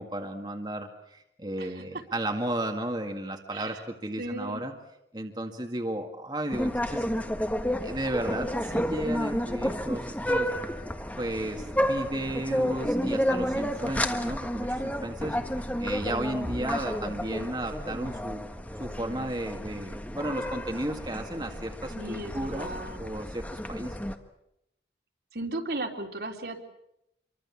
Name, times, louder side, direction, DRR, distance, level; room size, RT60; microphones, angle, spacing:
voice 1, 0.0-4.7 5.1-7.0 7.8-10.5 11.2-15.4 15.8-18.4 18.8-22.7 23.0-24.0, right 1 dB, 25° right, 3 dB, 2.0 m, -34 dB
voice 2, 1.6-2.0 3.5-3.8 4.2-4.7 21.9-23.0 25.3-26.6, right 2 dB, 65° right, 3 dB, 3.5 m, -36 dB
sound 1, 6.5-24.1, equal, 10° left, 1.5 m, -31 dB
27.5 x 24.0 x 7.4 m, 0.81 s
head